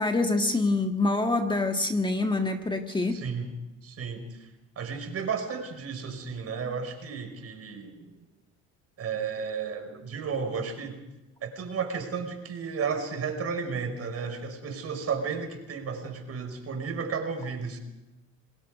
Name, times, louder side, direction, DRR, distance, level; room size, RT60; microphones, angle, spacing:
voice 1, 0.0-3.2, left 2 dB, 15° left, 5 dB, 1.7 m, -26 dB
voice 2, 3.1-3.5 3.8-4.5 4.8-8.2 9.0-11.0 11.4-17.8, right 5 dB, 45° right, 6 dB, 5.3 m, -33 dB
29.0 x 19.5 x 5.2 m, 1.0 s
supercardioid pair, 85°, 33 cm